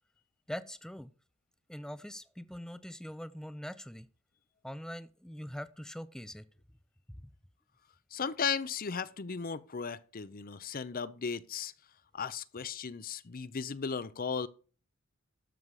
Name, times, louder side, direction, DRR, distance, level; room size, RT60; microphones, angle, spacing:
voice 1, 0.5-1.1 1.7-4.1 4.6-6.4 7.1-7.2, equal, 5° left, 0.5 m, -43 dB
voice 2, 8.1-11.7 12.1-14.5, left 6 dB, 45° left, 0.6 m, -36 dB
12.5 x 6.4 x 4.8 m
head